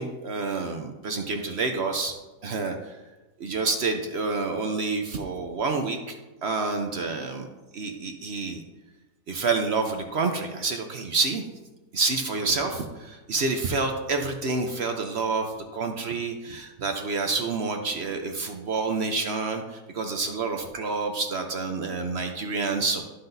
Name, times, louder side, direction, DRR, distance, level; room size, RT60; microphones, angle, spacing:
voice 1, 0.0-2.1 2.4-3.0 3.4-6.2 6.4-7.5 7.7-8.6 9.3-11.4 11.9-23.0, right 3 dB, 55° right, 4 dB, 0.8 m, -28 dB
13.0 x 5.8 x 2.6 m, 1.1 s
omnidirectional pair, 1.7 m